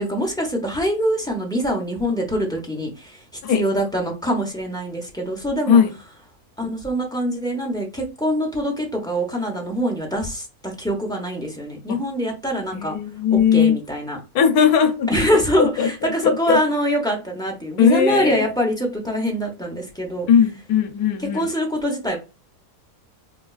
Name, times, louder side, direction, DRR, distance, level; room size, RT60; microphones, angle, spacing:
voice 1, 0.0-5.8 6.6-13.0 13.3-14.2 15.1-20.3 21.2-22.2, equal, 5° left, 0.4 m, -24 dB
voice 2, 12.7-13.8 14.3-15.1 15.6-16.6 17.8-18.5 20.3-21.5, left 7 dB, 80° left, 1.1 m, -18 dB
4.9 x 2.3 x 2.3 m
omnidirectional pair, 1.6 m